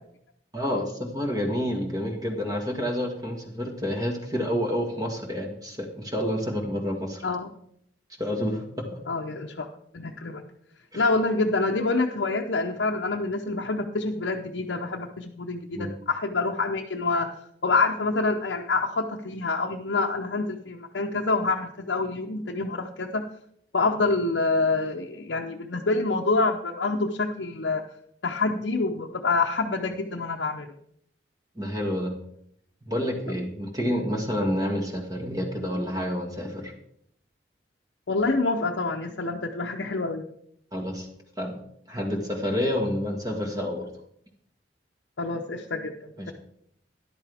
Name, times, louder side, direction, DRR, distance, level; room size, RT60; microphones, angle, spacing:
voice 1, 0.5-7.2 8.2-8.9 10.9-11.1 15.7-15.9 31.5-32.2 32.8-36.7 40.7-41.1 41.4-41.6 41.9-43.9 46.2-46.3, equal, 20° right, 2 dB, 1.7 m, -29 dB
voice 2, 9.1-9.7 9.9-10.4 10.9-17.3 17.6-23.2 23.7-27.8 28.2-30.7 38.1-40.2 45.2-46.3, left 3 dB, 85° left, 0 dB, 0.8 m, -27 dB
13.0 x 11.0 x 3.5 m, 0.70 s
head